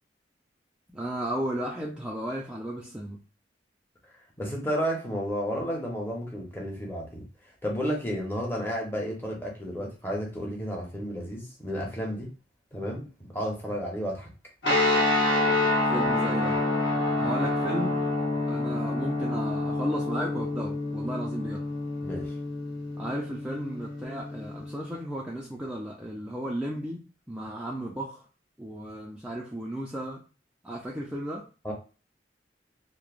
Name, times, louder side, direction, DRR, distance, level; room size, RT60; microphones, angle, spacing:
voice 1, 0.9-3.2 15.9-16.6 17.2-18.0 18.5-21.6 23.0-28.2 28.6-30.2 30.6-31.5, right 1 dB, 5° right, -3 dB, 0.3 m, -34 dB
voice 2, 4.4-7.2 7.6-12.3 12.7-13.1 13.3-14.3 22.0-22.3 31.6-31.7, equal, 10° left, -2 dB, 0.7 m, -32 dB
sound 1, 14.6-25.0, left 2 dB, 70° left, 1.0 m, -27 dB
3.0 x 2.0 x 2.3 m, 0.34 s
head